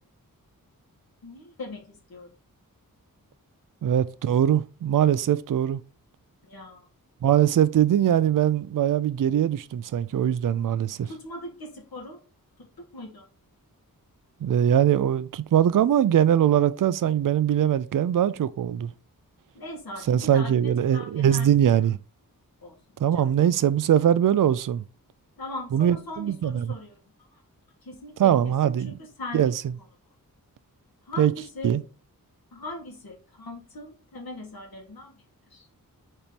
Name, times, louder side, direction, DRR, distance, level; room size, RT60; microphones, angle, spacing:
voice 1, 1.2-2.3 6.4-6.9 11.0-12.2 12.8-13.2 19.5-21.8 22.6-22.7 23.1-23.3 25.4-27.0 27.3-27.4 27.8-29.5 31.1-31.8 32.5-35.2 35.5-35.7, left 2 dB, 80° left, 2.2 m, -40 dB
voice 2, 3.8-5.8 7.2-11.1 14.4-18.9 20.1-22.0 23.0-24.8 25.7-26.7 28.2-28.9 29.3-29.5 31.2-31.3 31.6-31.8, right 10 dB, 65° right, 0.5 m, -22 dB
4.5 x 4.2 x 5.1 m
wide cardioid pair, 100°, 35 cm